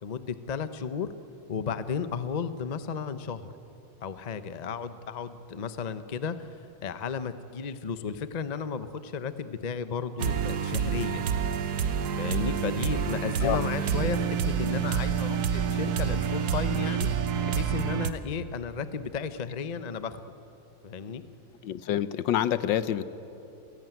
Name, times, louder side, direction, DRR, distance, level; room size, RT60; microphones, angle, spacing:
voice 1, 0.0-1.1 1.5-3.5 4.0-11.2 12.2-17.1 17.4-20.2 20.8-21.2, left 6 dB, 40° left, 12 dB, 0.5 m, -34 dB
sound 1, 10.2-18.1, right 7 dB, 60° right, 1.4 m, -28 dB
voice 2, 21.6-23.0, left 11 dB, 80° left, 14 dB, 1.5 m, -27 dB
29.0 x 17.0 x 9.2 m, 2.9 s
omnidirectional pair, 2.0 m